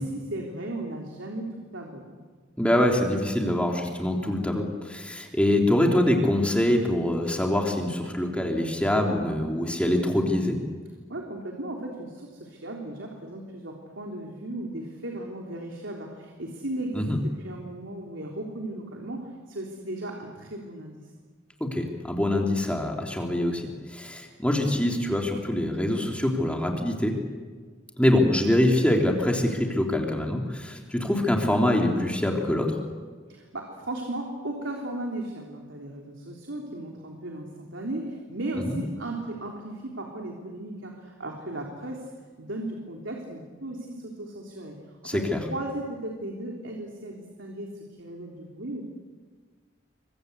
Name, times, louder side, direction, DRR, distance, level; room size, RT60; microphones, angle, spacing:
voice 1, 0.0-2.2 11.1-21.1 33.3-42.1 42.4-44.8 45.1-45.2 45.5-48.8, right 1 dB, 75° right, 0 dB, 3.7 m, -36 dB
voice 2, 2.6-10.6 16.9-17.2 21.6-27.1 28.0-32.7 38.7-38.8 45.0-45.4, left 1 dB, 5° left, 1 dB, 3.3 m, -24 dB
28.5 x 24.5 x 8.2 m, 1.5 s
head